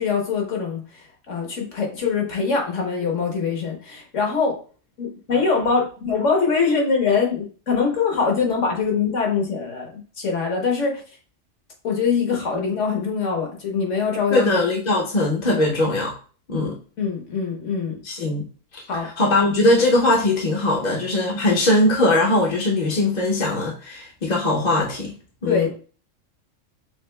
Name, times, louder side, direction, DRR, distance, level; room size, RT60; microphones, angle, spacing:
voice 1, 0.0-4.6 5.0-11.0 11.8-14.5 17.0-18.0 18.9-19.1 25.5-25.7, left 5 dB, 70° left, 1 dB, 1.4 m, -23 dB
voice 2, 14.3-16.1 16.5-16.8 18.1-18.5 18.7-18.8 19.2-25.1 25.4-25.7, left 2 dB, 45° left, -2 dB, 0.7 m, -20 dB
6.3 x 2.4 x 2.2 m, 0.38 s
omnidirectional pair, 1.3 m